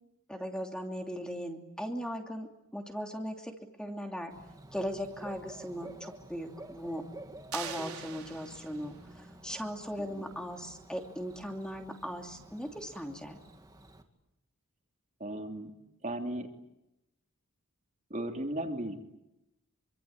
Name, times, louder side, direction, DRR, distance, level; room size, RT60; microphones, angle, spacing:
voice 1, 0.3-4.3 4.7-7.0 7.5-13.4, equal, 5° left, 3 dB, 2.8 m, -38 dB
Bird / Cricket, 4.3-14.0, right 1 dB, 15° right, 2.5 m, -51 dB
sound 1, 7.5-9.0, right 9 dB, 80° right, 4.2 m, -43 dB
voice 2, 15.2-15.7 16.0-16.5 18.1-19.0, right 1 dB, 35° right, 4 dB, 3.1 m, -36 dB
27.0 x 25.0 x 8.8 m, 0.90 s
head